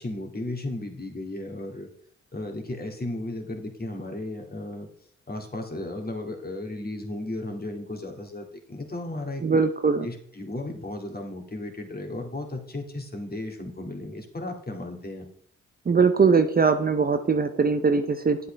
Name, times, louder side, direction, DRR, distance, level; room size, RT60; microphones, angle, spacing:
voice 1, 0.0-1.9 2.3-4.9 5.3-9.4 10.0-15.3, left 1 dB, 30° left, 3 dB, 2.2 m, -35 dB
voice 2, 9.4-10.1 15.9-18.4, right 5 dB, 30° right, 8 dB, 0.7 m, -21 dB
8.3 x 7.8 x 3.4 m, 0.63 s
supercardioid pair, 50°, 32 cm